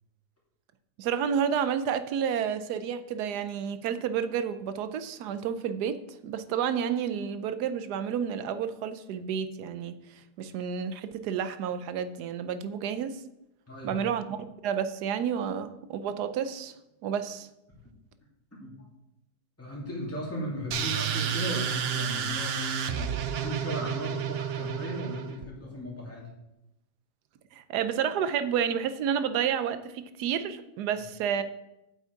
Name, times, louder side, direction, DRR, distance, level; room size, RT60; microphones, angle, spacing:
voice 1, 1.0-13.2 13.8-16.7 17.0-17.5 27.5-31.4, right 8 dB, 90° right, 12 dB, 1.2 m, -30 dB
voice 2, 13.7-14.0 18.6-18.7 19.6-22.5 22.9-26.3, equal, 10° left, -4 dB, 2.6 m, -36 dB
sound 1, 20.7-25.5, right 7 dB, 60° right, 0.7 m, -31 dB
8.1 x 8.0 x 4.7 m, 0.90 s
omnidirectional pair, 1.7 m